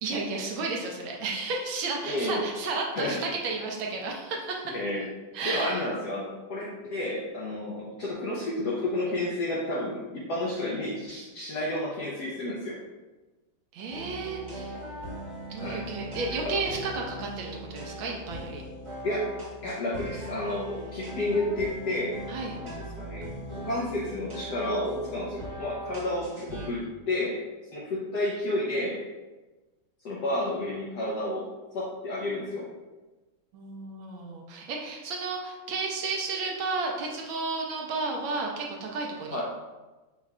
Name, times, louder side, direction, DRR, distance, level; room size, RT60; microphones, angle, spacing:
voice 1, 0.0-4.8 5.3-5.8 13.7-14.8 15.5-18.6 22.3-22.6 33.5-39.4, right 3 dB, 70° right, 0 dB, 1.3 m, -32 dB
voice 2, 2.0-2.4 2.9-3.2 4.7-5.0 5.4-12.8 15.6-15.8 16.4-16.5 19.0-19.3 19.6-22.2 22.6-22.7 23.0-23.3 23.5-27.4 27.7-29.0 30.0-31.5 31.7-32.7 39.3-39.4, left 1 dB, 70° left, -5 dB, 1.0 m, -31 dB
sound 1, 13.9-26.7, right 1 dB, 45° right, 0.3 m, -40 dB
4.9 x 2.3 x 4.1 m, 1.2 s
omnidirectional pair, 2.4 m